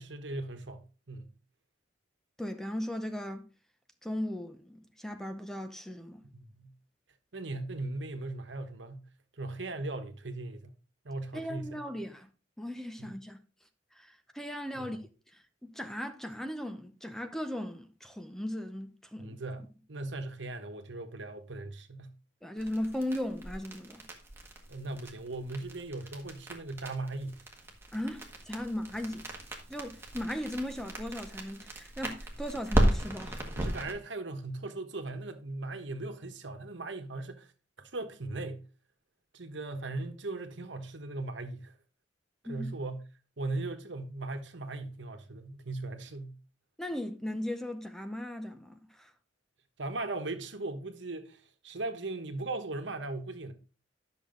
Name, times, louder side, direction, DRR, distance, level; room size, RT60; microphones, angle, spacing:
voice 1, 0.0-1.3 6.3-6.7 7.3-9.1 9.4-10.7 11.0-11.8 13.0-13.1 14.7-15.0 19.2-22.1 24.7-27.5 33.6-37.5 37.8-38.6 39.3-41.7 42.4-43.0 43.4-46.4 49.8-53.5, right 2 dB, 70° right, 1.2 m, -38 dB
voice 2, 2.4-3.5 4.0-6.2 11.3-12.3 12.6-13.4 13.9-15.0 15.3-19.4 22.4-24.0 27.9-29.3 29.7-33.5 42.4-42.7 46.8-49.1, left 1 dB, ahead, 0.7 m, -37 dB
sound 1, 22.6-33.9, right 1 dB, 15° right, 1.6 m, -35 dB
10.5 x 6.4 x 3.9 m
head